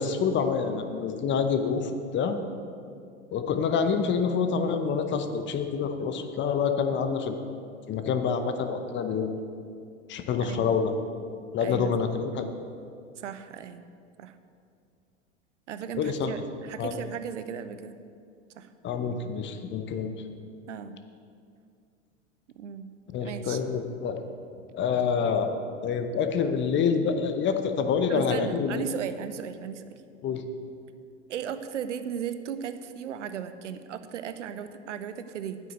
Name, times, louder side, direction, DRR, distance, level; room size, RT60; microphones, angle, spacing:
voice 1, 0.0-2.4 3.3-7.4 7.9-9.3 10.1-10.9 11.5-12.5 15.9-16.3 16.8-17.0 18.8-20.1 23.1-24.2 24.7-25.6 25.8-28.9 30.2-30.4, left 6 dB, 30° left, 8 dB, 0.9 m, -27 dB
voice 2, 10.4-10.8 11.6-11.9 13.2-13.8 14.2-14.3 15.7-18.0 18.5-18.7 20.7-21.0 22.6-22.9 23.2-23.6 28.1-30.0 31.3-35.6, right 8 dB, 75° right, 11 dB, 0.8 m, -36 dB
9.0 x 6.4 x 7.9 m, 2.4 s
figure-of-eight pair, 85°, 37 cm